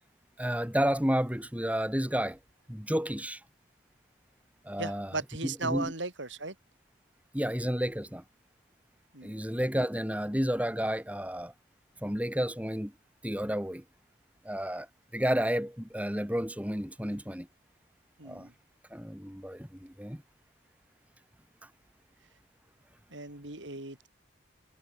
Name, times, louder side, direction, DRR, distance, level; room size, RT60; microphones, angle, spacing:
voice 1, 0.4-2.4 2.7-3.4 4.6-5.2 5.4-5.9 7.3-8.2 9.2-11.5 12.0-12.9 13.2-13.8 14.4-14.9 15.1-17.5 18.2-18.5 18.9-20.2, equal, 5° right, 3.2 m, -31 dB
voice 2, 4.8-6.5 9.1-9.4 18.2-18.5 23.1-24.1, right 3 dB, 80° right, 6.3 m, -37 dB
head